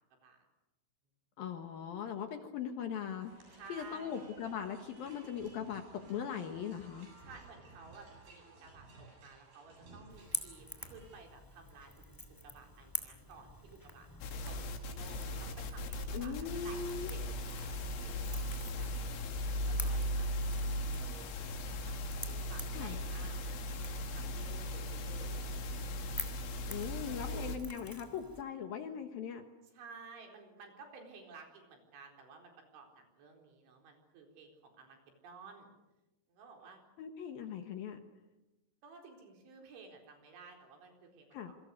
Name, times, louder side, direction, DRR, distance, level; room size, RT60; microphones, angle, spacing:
voice 1, 1.4-7.1 16.1-17.1 22.7-23.0 26.7-29.4 37.0-38.0 41.3-41.5, left 7 dB, 65° left, 6 dB, 2.7 m, -40 dB
sound 1, 3.2-11.2, right 3 dB, 55° right, 9.5 m, -57 dB
voice 2, 3.6-4.2 7.2-11.9 12.4-17.7 18.0-18.9 19.5-20.4 20.9-23.8 24.2-25.7 27.0-27.5 29.7-35.0 35.2-35.7 36.3-36.8 38.8-41.5, right 4 dB, 75° right, 2 dB, 6.6 m, -54 dB
Crackle / Crack, 10.1-28.4, left 1 dB, 10° left, 1.2 m, -48 dB
sound 2, 14.2-27.6, left 1 dB, 85° left, 4.8 m, -38 dB
27.5 x 25.0 x 6.6 m, 1.0 s
omnidirectional pair, 5.4 m